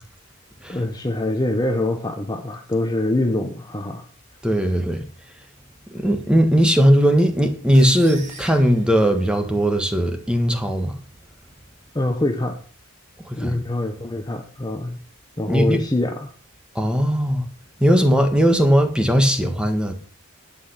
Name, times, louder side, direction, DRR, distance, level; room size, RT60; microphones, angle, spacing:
voice 1, 0.7-4.0 11.9-12.6 13.4-15.0 15.4-16.3, left 1 dB, 20° left, 1.0 m, -24 dB
voice 2, 4.4-5.0 5.9-10.9 13.3-13.6 15.5-15.8 16.7-17.4 17.8-19.9, equal, 5° right, 1.5 m, -18 dB
sound 1, 7.7-9.7, right 3 dB, 35° right, 3.7 m, -41 dB
11.0 x 8.6 x 5.8 m
head